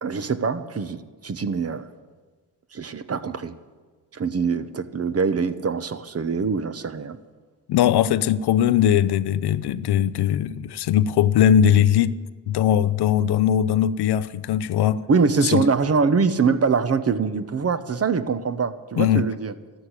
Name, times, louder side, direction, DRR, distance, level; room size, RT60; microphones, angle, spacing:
voice 1, 0.0-1.9 2.7-3.5 4.1-7.2 15.1-19.5, right 5 dB, 35° right, 1.1 m, -23 dB
voice 2, 7.7-12.2 12.5-15.0 15.5-15.6 19.0-19.3, left 10 dB, 65° left, 0.7 m, -20 dB
12.5 x 12.5 x 8.2 m
supercardioid pair, 70°, 42 cm